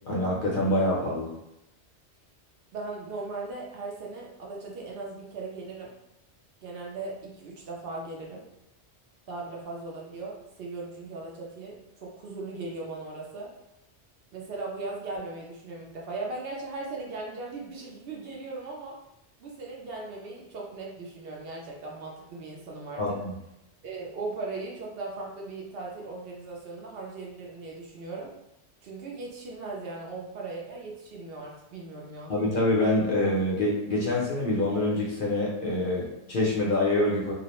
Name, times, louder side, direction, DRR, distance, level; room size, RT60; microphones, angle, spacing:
voice 1, 0.1-1.3 23.0-23.3 32.3-37.3, left 1 dB, 60° left, -4 dB, 0.6 m, -26 dB
voice 2, 2.7-5.9 6.6-8.4 9.3-13.5 14.3-19.0 19.4-23.2 23.8-28.3 28.8-32.3, right 3 dB, 65° right, -2 dB, 0.7 m, -38 dB
2.3 x 2.0 x 2.9 m, 0.86 s
omnidirectional pair, 1.2 m